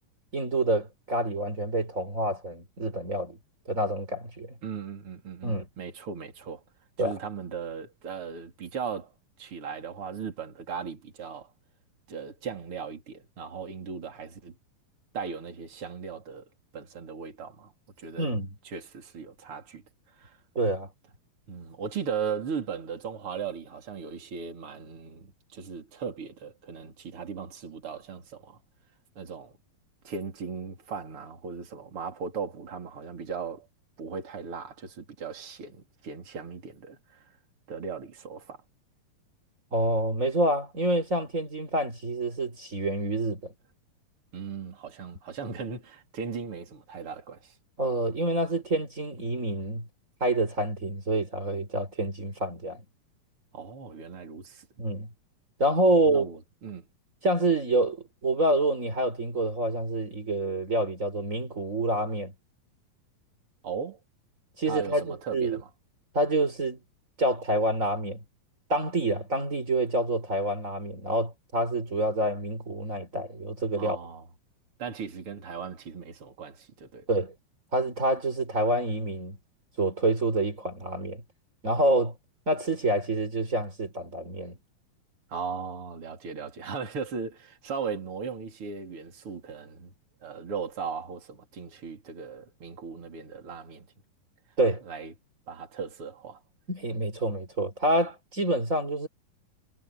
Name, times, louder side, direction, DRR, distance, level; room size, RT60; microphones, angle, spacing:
voice 1, 0.3-3.4 3.7-4.5 5.4-5.7 7.0-7.2 18.2-18.5 20.5-20.9 39.7-43.5 47.8-49.8 50.2-52.8 54.8-55.1 55.6-56.3 57.2-62.3 64.6-65.6 66.1-66.8 67.2-68.2 68.7-74.0 77.1-77.3 77.7-79.4 79.8-81.2 81.6-82.1 82.5-84.6 94.6-94.8 96.7-99.1, right 1 dB, 20° right, 4.4 m, -27 dB
voice 2, 4.6-6.6 7.0-9.1 9.4-11.5 12.1-14.5 15.1-16.5 16.7-17.7 18.0-18.3 18.6-19.8 20.2-20.4 21.5-28.6 29.2-29.6 30.0-33.7 34.0-37.3 37.7-38.6 44.3-47.6 53.5-54.7 56.1-56.9 63.6-64.0 64.7-65.7 73.8-74.3 74.8-77.0 85.3-89.9 90.2-93.9 94.8-95.1 95.5-96.4, right 6 dB, 40° right, 4.4 m, -37 dB
omnidirectional pair, 4.1 m